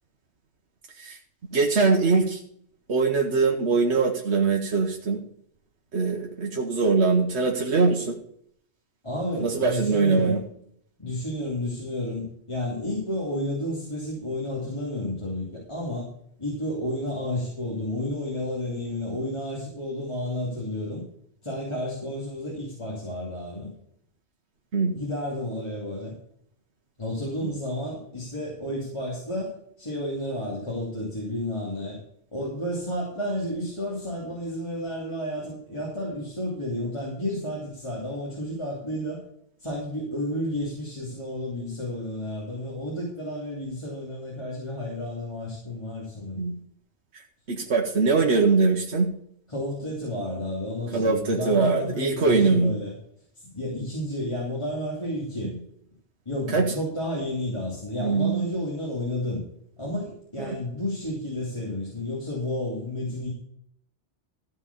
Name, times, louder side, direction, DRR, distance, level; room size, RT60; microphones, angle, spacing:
voice 1, 1.5-2.4 2.9-5.2 5.9-8.2 9.4-10.4 24.7-25.0 27.4-27.5 46.4-46.5 47.5-49.1 50.9-52.7 55.4-55.6 56.5-56.7 58.0-58.5 60.4-60.5, right 4 dB, 75° right, 1 dB, 1.5 m, -22 dB
voice 2, 9.0-10.4 11.0-16.1 16.4-21.0 21.4-23.7 24.9-26.2 27.0-29.5 29.8-32.0 32.3-39.2 39.6-46.4 49.5-52.9 53.5-55.5 56.3-59.4 59.8-63.3, left 1 dB, 25° left, -5 dB, 2.8 m, -31 dB
14.0 x 4.8 x 6.9 m, 0.68 s
omnidirectional pair, 1.2 m